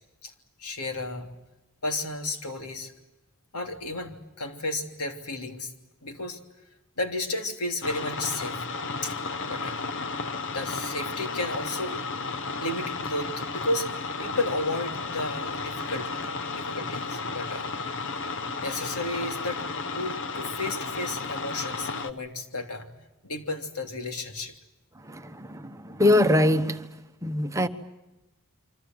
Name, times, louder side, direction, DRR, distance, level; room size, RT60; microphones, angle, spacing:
voice 1, 0.6-1.3 1.8-2.9 3.5-5.7 6.0-6.4 7.0-8.6 9.0-9.2 9.5-9.9 10.5-12.0 12.6-16.1 16.5-17.7 18.6-19.6 19.9-22.9 23.2-24.5, left 2 dB, 85° left, 3.2 m, -33 dB
sound 1, 7.8-22.1, left 4 dB, 60° left, 1.2 m, -33 dB
voice 2, 24.9-26.9 27.2-27.7, left 1 dB, 15° right, 1.1 m, -23 dB
28.0 x 25.0 x 7.8 m
head